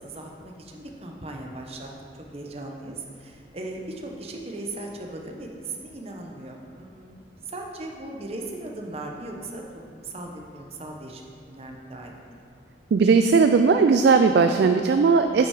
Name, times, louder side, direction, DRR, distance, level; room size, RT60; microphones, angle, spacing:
voice 1, 0.0-1.9 2.3-9.6 9.9-11.2 11.5-12.1, right 2 dB, 35° right, 1 dB, 0.8 m, -38 dB
voice 2, 12.9-15.5, right 5 dB, 60° right, 7 dB, 0.3 m, -18 dB
8.9 x 5.5 x 4.9 m, 2.3 s
head